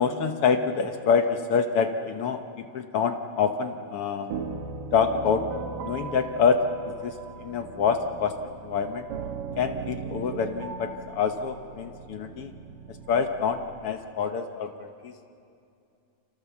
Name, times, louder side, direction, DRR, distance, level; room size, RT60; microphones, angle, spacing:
voice 1, 0.0-4.3 4.9-5.5 5.8-6.6 7.0-8.3 8.6-9.1 9.6-12.5 13.1-15.1, left 6 dB, 70° left, 6 dB, 1.4 m, -26 dB
sound 1, 4.3-13.9, right 5 dB, 85° right, 3.2 m, -39 dB
29.5 x 25.5 x 7.3 m, 2.6 s
omnidirectional pair, 3.8 m